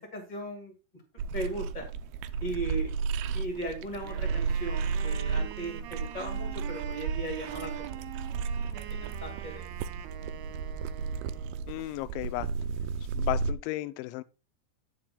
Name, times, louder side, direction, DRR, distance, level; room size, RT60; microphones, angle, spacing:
voice 1, 0.1-0.7 1.3-1.9 2.4-2.9 3.3-7.7 8.5-9.7, right 2 dB, 30° left, 0.7 m, -37 dB
sound 1, 1.2-13.5, right 5 dB, 90° right, 2.3 m, -33 dB
Wind instrument woodwind instrument, 4.0-11.7, right 10 dB, 70° right, 2.8 m, -44 dB
voice 2, 11.7-12.5 13.2-14.2, left 18 dB, 85° left, 3.0 m, -34 dB
9.6 x 7.5 x 3.7 m
omnidirectional pair, 5.4 m